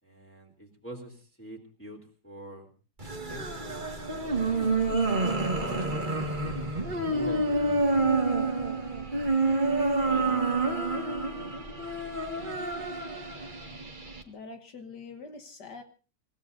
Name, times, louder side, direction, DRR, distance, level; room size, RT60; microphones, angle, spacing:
voice 1, 0.0-2.7 3.3-4.6 5.5-6.7 7.1-8.4 9.3-11.9 12.3-12.5, right 1 dB, 5° left, -1 dB, 3.3 m, -46 dB
sound 1, 3.0-14.2, right 3 dB, 25° right, 1.9 m, -28 dB
voice 2, 14.3-15.8, left 4 dB, 70° left, 6 dB, 1.9 m, -44 dB
28.5 x 16.5 x 2.7 m, 0.35 s
omnidirectional pair, 1.9 m